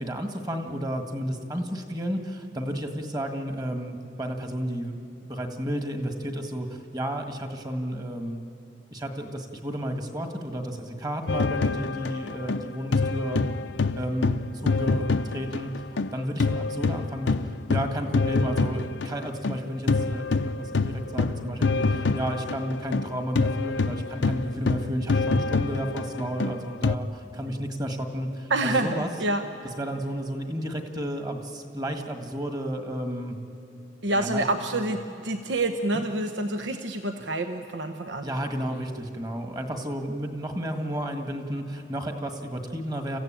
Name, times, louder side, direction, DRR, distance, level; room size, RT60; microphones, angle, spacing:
voice 1, 0.0-8.4 8.9-13.4 13.9-15.7 16.1-29.1 29.8-33.4 34.1-34.4 34.7-34.9 35.9-36.0 38.2-43.2, equal, 20° right, 5 dB, 1.8 m, -32 dB
sound 1, 11.3-16.1 16.4-27.0, left 3 dB, 80° left, 0.7 m, -26 dB
voice 2, 28.5-29.4 34.0-38.3, right 2 dB, 75° right, 7 dB, 1.0 m, -27 dB
28.5 x 15.5 x 9.0 m, 2.9 s
head